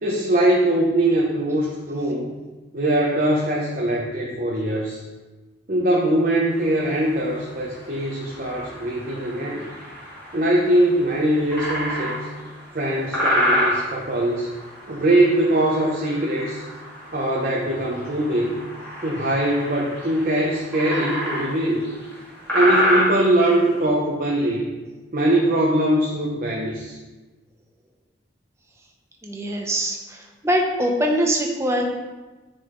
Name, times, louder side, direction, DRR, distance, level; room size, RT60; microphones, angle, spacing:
voice 1, 0.0-2.3 2.7-5.0 5.7-9.7 10.3-12.3 12.7-14.5 14.9-16.6 17.1-18.6 19.0-21.8 22.5-24.6 25.1-27.0, right 1 dB, 50° right, -3 dB, 0.8 m, -21 dB
sound 1, 6.5-23.8, equal, 10° left, 2.2 m, -29 dB
voice 2, 29.2-31.8, equal, 15° right, 1 dB, 0.8 m, -23 dB
9.2 x 4.1 x 3.7 m, 1.2 s
head